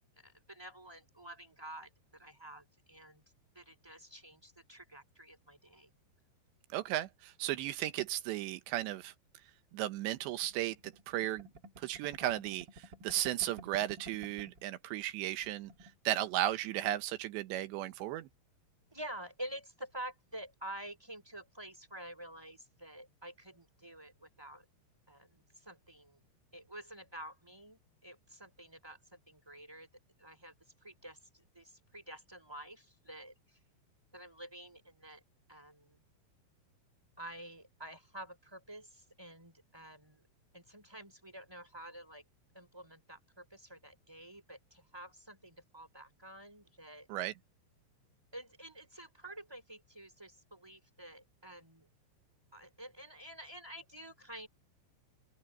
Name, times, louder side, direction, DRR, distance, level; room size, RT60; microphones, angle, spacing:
voice 1, 0.2-3.2 3.5-5.9 18.9-24.6 25.1-26.2 26.5-29.9 30.2-30.5 30.8-33.6 34.1-35.2 35.5-36.0 37.2-40.2 40.5-42.2 42.5-47.1 48.3-51.9 52.5-54.5, right 1 dB, 5° right, 2.8 m, -49 dB
voice 2, 6.7-9.1 9.7-11.5 11.8-15.7 16.1-18.3 47.1-47.3, right 14 dB, 75° right, 2.9 m, -35 dB
sound 1, 10.3-14.7 15.0-15.1 15.4-16.0, right 2 dB, 40° right, 1.5 m, -53 dB
open air
omnidirectional pair, 6.0 m